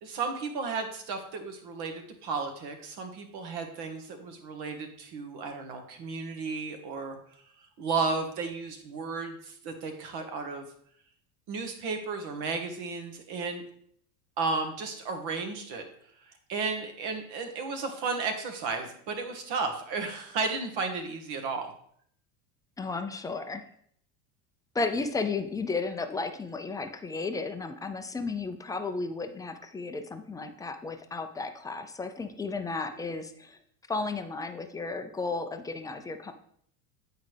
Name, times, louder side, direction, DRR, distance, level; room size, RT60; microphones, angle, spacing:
voice 1, 0.0-7.2 7.8-10.6 11.5-13.6 14.4-15.8 16.5-21.7, right 4 dB, 55° right, 5 dB, 1.4 m, -33 dB
voice 2, 22.8-23.6 24.7-33.6 33.9-36.3, left 3 dB, 10° left, 7 dB, 0.3 m, -33 dB
8.1 x 4.8 x 3.3 m, 0.64 s
hypercardioid pair, 95°, 47 cm